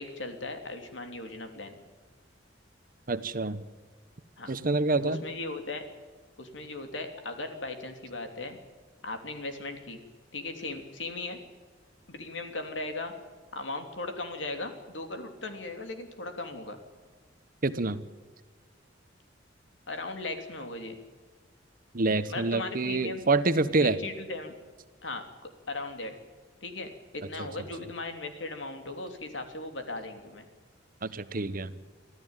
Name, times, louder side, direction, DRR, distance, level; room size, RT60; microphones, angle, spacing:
voice 1, 0.0-1.8 4.4-4.5 5.0-5.8 6.4-8.6 9.0-10.0 10.3-11.4 12.1-13.1 13.5-16.8 19.9-21.0 22.3-23.2 24.0-24.5 25.0-26.1 26.6-30.5, left 2 dB, 80° left, 6 dB, 3.2 m, -38 dB
voice 2, 3.1-3.6 4.5-5.2 17.6-18.0 21.9-24.0 31.0-31.7, right 3 dB, 50° right, 13 dB, 1.1 m, -27 dB
25.0 x 14.5 x 9.2 m, 1.5 s
head